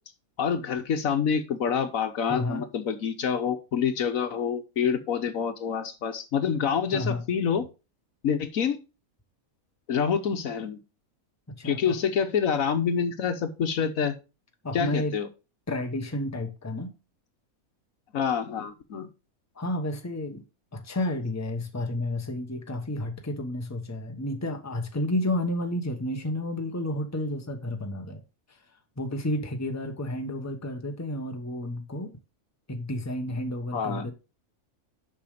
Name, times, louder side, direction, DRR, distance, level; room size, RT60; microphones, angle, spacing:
voice 1, 0.4-7.7 8.2-8.8 9.9-10.8 11.6-14.1 14.7-15.3 18.1-19.1 33.7-34.1, left 7 dB, 75° left, 1.4 m, -27 dB
voice 2, 2.3-2.6 6.9-7.2 11.5-12.0 14.6-15.2 15.7-16.9 19.5-20.4 20.7-28.2 29.0-32.2 32.7-34.1, left 1 dB, 10° left, 1.1 m, -31 dB
6.9 x 6.1 x 5.0 m
omnidirectional pair, 1.5 m